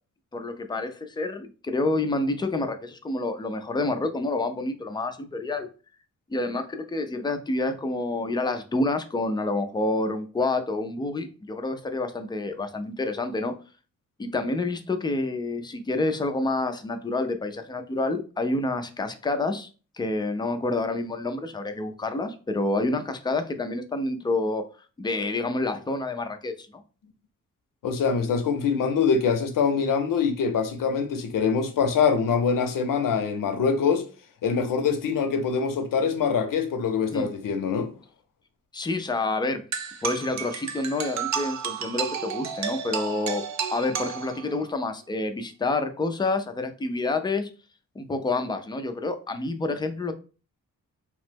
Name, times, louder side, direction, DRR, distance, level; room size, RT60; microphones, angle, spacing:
voice 1, 0.3-5.7 6.3-13.5 14.2-19.7 20.0-24.6 25.0-26.8 37.1-37.3 38.7-39.6 40.0-43.4 43.7-47.5 48.0-50.1, left 2 dB, 15° left, 0.3 m, -28 dB
voice 2, 27.8-34.1 34.4-37.9, left 6 dB, 85° left, 0.6 m, -24 dB
sound 1, 39.7-44.7, right 7 dB, 60° right, 0.5 m, -32 dB
2.9 x 2.1 x 3.2 m
wide cardioid pair, 120°, 32 cm